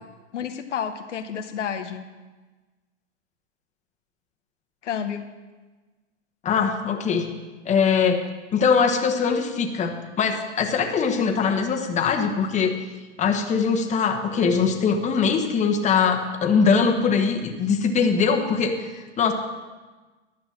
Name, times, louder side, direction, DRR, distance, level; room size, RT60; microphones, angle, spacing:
voice 1, 0.3-2.0 4.8-5.3, left 8 dB, 90° left, 7 dB, 1.0 m, -30 dB
voice 2, 6.4-7.3 7.6-8.2 8.5-12.8 13.2-19.3, left 5 dB, 20° left, 4 dB, 1.1 m, -22 dB
11.0 x 6.0 x 7.4 m, 1.3 s
hypercardioid pair, 120°, 35 cm